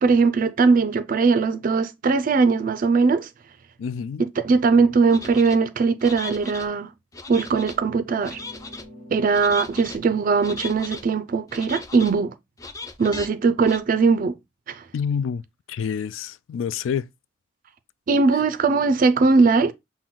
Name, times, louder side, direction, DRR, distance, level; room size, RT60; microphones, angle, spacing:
voice 1, 0.0-3.3 4.2-6.9 7.3-8.4 9.1-12.3 13.0-14.4 14.7-14.8 18.1-19.7, right 4 dB, 45° right, 0.4 m, -20 dB
voice 2, 3.8-4.3 14.9-15.4 15.7-17.1, left 7 dB, 90° left, 0.3 m, -27 dB
sound 1, 5.1-5.6 6.0-6.7 7.1-7.8 8.2-8.8 9.3-10.0 10.4-11.0 11.5-12.1 12.6-13.3 13.6-13.8, left 3 dB, 15° left, 0.4 m, -37 dB
sound 2, 8.1-10.8, equal, 50° left, 1.4 m, -45 dB
6.0 x 2.1 x 3.7 m
head